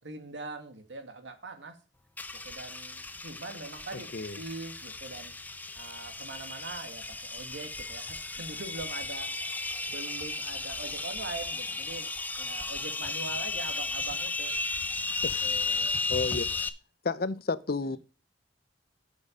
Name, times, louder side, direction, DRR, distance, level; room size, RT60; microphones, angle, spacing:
voice 1, 0.0-1.8 2.4-5.3 5.7-9.4 9.9-14.6 15.4-16.0 17.8-17.9, right 3 dB, 80° right, 2.0 m, -42 dB
sound 1, 2.2-16.7, left 3 dB, 10° left, 0.6 m, -34 dB
voice 2, 3.9-4.4 15.2-15.3 16.1-16.5 17.0-18.0, left 3 dB, 55° left, 0.7 m, -31 dB
8.6 x 6.4 x 5.1 m
head